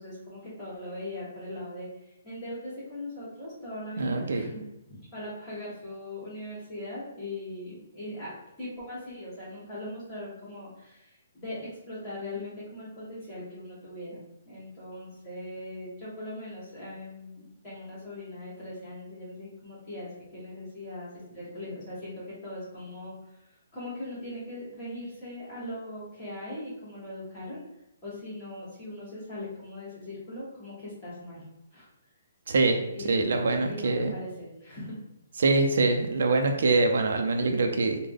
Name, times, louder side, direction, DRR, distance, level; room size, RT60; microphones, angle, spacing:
voice 1, 0.0-14.2 14.4-27.6 28.0-31.4 31.7-31.9 32.9-35.0, left 1 dB, 20° left, -10 dB, 1.4 m, -40 dB
voice 2, 4.0-4.4 32.5-32.8 33.1-34.1 35.4-38.0, right 3 dB, 65° right, 4 dB, 0.4 m, -24 dB
3.4 x 2.1 x 3.5 m, 0.89 s
hypercardioid pair, 170°, 0 cm